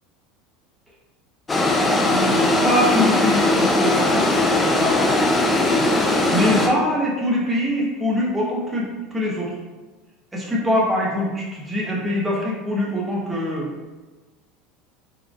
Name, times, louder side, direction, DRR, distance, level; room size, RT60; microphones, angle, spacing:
sound 1, 1.5-6.7, left 2 dB, 15° left, 0.5 m, -19 dB
voice 1, 1.9-5.2 6.3-9.5 10.3-13.7, left 1 dB, 10° right, -4 dB, 0.9 m, -23 dB
4.1 x 3.1 x 2.4 m, 1.2 s
supercardioid pair, 120°, 0 cm